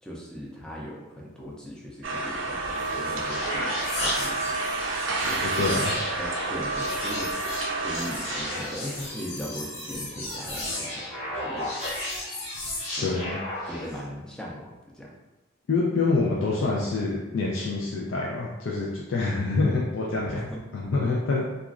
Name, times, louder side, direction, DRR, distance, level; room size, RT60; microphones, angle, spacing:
voice 1, 0.0-3.7 4.0-4.5 6.2-7.3 7.7-11.7 12.9-13.1 13.6-15.1 20.2-20.6, equal, 5° left, -4 dB, 0.4 m, -39 dB
sound 1, 2.0-8.6, right 3 dB, 70° right, 0.4 m, -30 dB
sound 2, 2.6-14.0, left 1 dB, 35° left, 0.8 m, -34 dB
voice 2, 5.4-5.9 13.0-13.4 15.7-20.4 20.7-21.5, left 3 dB, 75° left, -4 dB, 0.4 m, -26 dB
2.9 x 2.4 x 2.4 m, 1.0 s
head